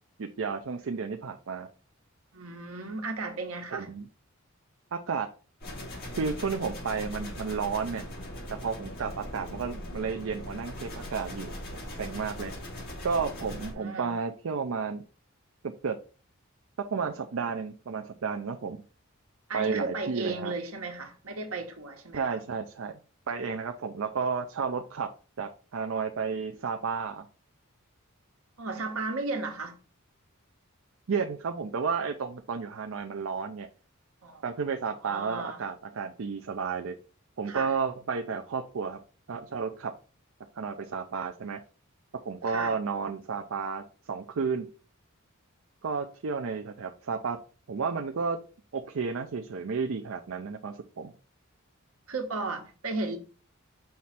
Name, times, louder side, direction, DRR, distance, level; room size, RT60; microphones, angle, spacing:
voice 1, 0.2-1.7 3.7-4.1 4.9-5.3 6.1-8.1 8.5-11.5 12.0-12.5 13.0-15.0 15.6-16.0 16.9-18.8 19.5-20.5 22.1-22.9 23.3-25.1 25.4-27.3 31.1-33.7 34.4-36.9 37.4-39.0 39.3-39.9 40.6-41.6 42.3-44.7 45.8-47.4 47.7-48.4 48.7-51.1, right 5 dB, 65° right, 0.5 m, -32 dB
voice 2, 2.3-3.9 13.4-13.5 13.8-14.1 19.5-22.4 28.6-29.8 34.2-34.4 35.0-35.6 37.5-37.8 42.4-42.7 52.1-53.2, right 3 dB, 80° right, 1.4 m, -35 dB
sound 1, 5.6-13.7, left 1 dB, 45° left, 3.2 m, -40 dB
5.7 x 3.2 x 5.7 m
head